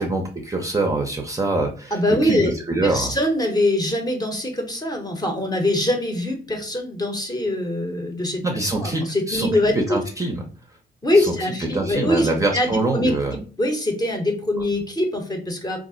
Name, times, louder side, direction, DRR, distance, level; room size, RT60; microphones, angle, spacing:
voice 1, 0.0-3.1 8.4-10.4 11.2-11.3 11.7-13.4, right 2 dB, 15° right, 2 dB, 0.6 m, -24 dB
voice 2, 1.9-2.5 2.8-10.0 11.0-15.8, left 1 dB, 20° left, 3 dB, 0.8 m, -23 dB
2.4 x 2.0 x 3.7 m, 0.39 s
cardioid pair, 90°, 20 cm